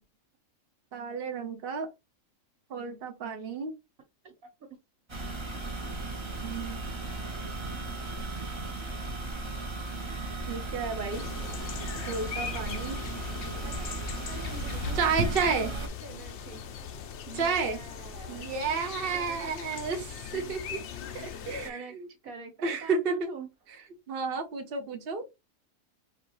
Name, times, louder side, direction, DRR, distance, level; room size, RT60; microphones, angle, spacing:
voice 1, 0.9-1.9 2.7-3.7 6.4-6.8 10.5-11.3 12.1-13.1 15.0-15.7 17.3-17.8 18.3-20.8 21.1-22.1 22.6-23.3 24.1-25.2, right 4 dB, 50° right, 1.0 m, -31 dB
sound 1, 5.1-15.9, right 3 dB, 25° right, 0.7 m, -36 dB
sound 2, 11.1-21.7, left 7 dB, 65° left, 0.8 m, -40 dB
voice 2, 13.6-14.0 14.2-16.6 17.3-18.5 19.1-19.9 21.6-23.5, right 4 dB, 80° right, 1.7 m, -45 dB
4.7 x 2.5 x 3.1 m
omnidirectional pair, 1.4 m